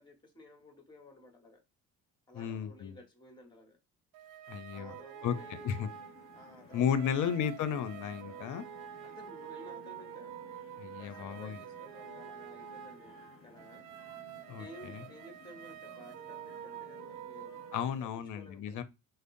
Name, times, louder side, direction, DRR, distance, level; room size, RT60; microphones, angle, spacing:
voice 1, 0.0-1.6 2.3-3.8 4.7-5.8 6.3-7.1 9.0-10.3 11.0-13.8 14.5-18.8, left 2 dB, 10° left, 1.3 m, -54 dB
voice 2, 2.3-3.0 4.5-4.9 5.2-5.3 5.6-5.9 6.7-8.6 10.8-11.6 14.5-15.0 17.7-18.8, left 8 dB, 60° left, 0.7 m, -34 dB
sound 1, 4.1-17.8, right 9 dB, 60° right, 0.5 m, -48 dB
sound 2, 5.3-18.1, left 3 dB, 35° left, 1.0 m, -58 dB
4.9 x 2.1 x 2.6 m
supercardioid pair, 85°, 35 cm